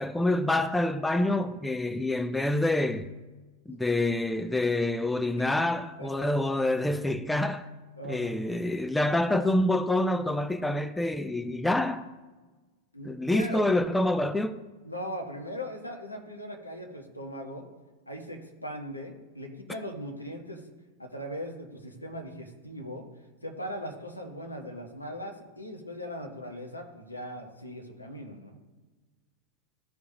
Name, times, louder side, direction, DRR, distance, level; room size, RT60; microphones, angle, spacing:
voice 1, 0.0-3.1 3.7-7.7 8.0-12.1 13.1-14.6, left 1 dB, 5° left, 0.4 m, -27 dB
voice 2, 6.0-6.7 8.0-8.4 12.9-13.7 14.8-17.6 18.1-20.7 21.0-23.0 23.4-28.6, equal, 85° left, 1.3 m, -39 dB
13.5 x 4.6 x 2.9 m
figure-of-eight pair, 90°, 0 cm